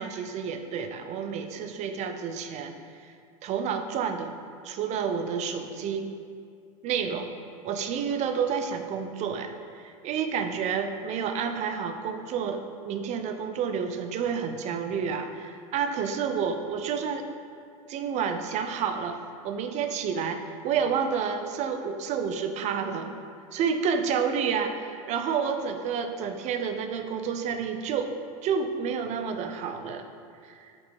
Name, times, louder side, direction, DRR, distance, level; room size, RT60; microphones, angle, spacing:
voice 1, 0.0-3.1 3.4-4.3 4.6-6.1 6.8-7.3 7.6-17.3 17.9-19.2 19.4-23.1 23.5-28.1 28.4-30.0 30.4-30.7, right 6 dB, 40° right, 7 dB, 0.5 m, -30 dB
5.3 x 3.9 x 4.6 m, 2.3 s
supercardioid pair, 110°, 18 cm